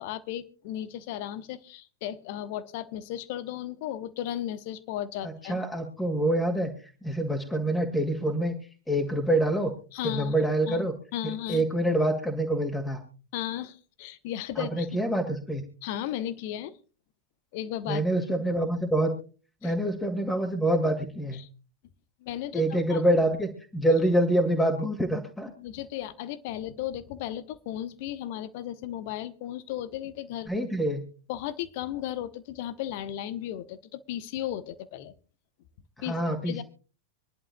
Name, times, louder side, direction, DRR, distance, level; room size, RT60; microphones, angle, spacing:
voice 1, 0.0-5.6 9.9-10.9 11.1-11.6 13.3-14.9 15.8-16.8 17.5-18.0 19.6-19.7 21.3-21.5 22.2-22.6 22.9-23.0 25.6-30.5 31.3-35.1 36.0-36.1 36.4-36.6, left 12 dB, 50° left, 13 dB, 0.9 m, -35 dB
voice 2, 5.2-6.7 7.0-8.6 8.9-9.7 10.0-10.9 11.5-13.0 14.6-15.6 17.9-19.1 19.6-21.4 22.5-25.5 30.5-31.0 36.1-36.6, right 1 dB, 5° left, 3 dB, 2.2 m, -26 dB
26.0 x 11.0 x 2.3 m, 0.37 s
figure-of-eight pair, 90°, 0 cm